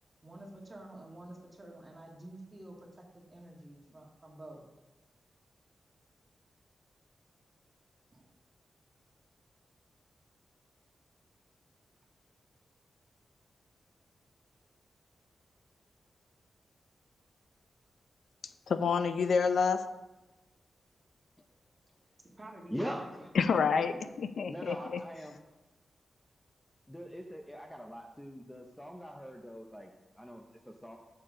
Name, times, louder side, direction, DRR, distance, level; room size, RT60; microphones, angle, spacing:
voice 1, 0.2-4.6 8.1-8.3 22.4-23.2 23.9-24.0, right 1 dB, 25° right, -1 dB, 1.7 m, -49 dB
voice 2, 18.7-19.9 23.4-25.0, left 5 dB, 75° left, 10 dB, 0.4 m, -28 dB
voice 3, 22.7-23.3 24.5-25.4 26.9-31.0, equal, 5° left, 2 dB, 0.6 m, -42 dB
9.5 x 6.7 x 3.7 m, 1.1 s
wide cardioid pair, 115°, 0 cm